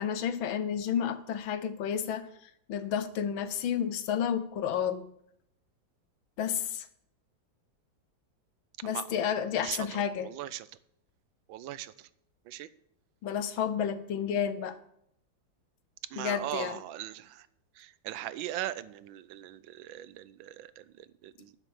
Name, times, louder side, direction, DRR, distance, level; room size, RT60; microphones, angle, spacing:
voice 1, 0.0-2.3 2.7-5.1 6.4-6.9 8.8-10.3 13.2-14.8 16.2-16.8, left 8 dB, 90° left, 12 dB, 1.7 m, -31 dB
voice 2, 10.2-10.7 11.5-12.1 12.5-12.7 16.1-17.5 17.7-21.6, right 13 dB, 90° right, 16 dB, 1.4 m, -39 dB
11.5 x 6.4 x 7.3 m, 0.75 s
omnidirectional pair, 2.1 m